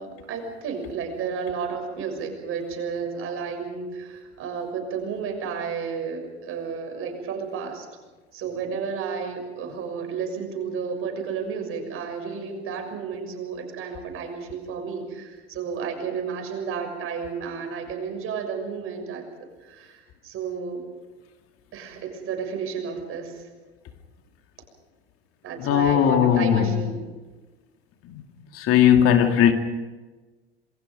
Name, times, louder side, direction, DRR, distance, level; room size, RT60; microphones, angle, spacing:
voice 1, 0.0-7.9 8.3-19.2 19.6-20.8 21.7-23.4 25.4-27.0, right 6 dB, 40° right, 6.6 m, -32 dB
voice 2, 25.6-26.7 28.5-29.5, left 9 dB, 45° left, 2.4 m, -18 dB
27.5 x 23.5 x 5.3 m
figure-of-eight pair, 75°, 33 cm